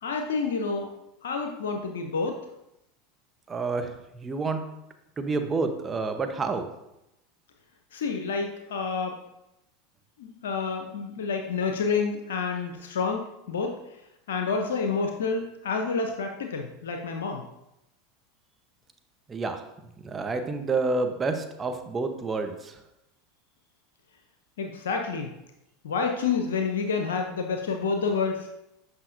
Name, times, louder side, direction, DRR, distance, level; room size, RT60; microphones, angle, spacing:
voice 1, 0.0-0.9 1.2-2.4 7.9-9.2 10.2-14.0 14.3-17.4 24.6-25.3 25.8-28.5, left 5 dB, 80° left, 4 dB, 0.6 m, -29 dB
voice 2, 3.5-4.6 5.2-6.7 19.3-19.6 20.0-22.8, right 3 dB, 25° right, 6 dB, 0.9 m, -29 dB
8.1 x 5.7 x 2.6 m, 0.87 s
hypercardioid pair, 90°, 0 cm